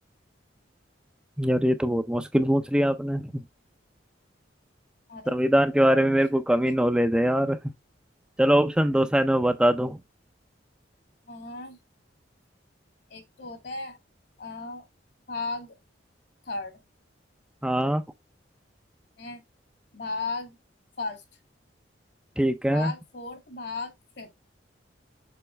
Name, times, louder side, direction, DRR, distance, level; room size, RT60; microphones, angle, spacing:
voice 1, 1.4-3.4 5.3-7.6 8.4-10.0 17.6-18.0 22.4-22.9, equal, 5° right, 0.4 m, -22 dB
voice 2, 11.3-11.8 13.1-14.0 14.4-14.8 15.3-15.8 16.5-16.8 19.2-19.4 19.9-20.6 21.0-21.2 22.7-24.3, left 3 dB, 60° left, 2.0 m, -35 dB
6.9 x 4.1 x 3.3 m
head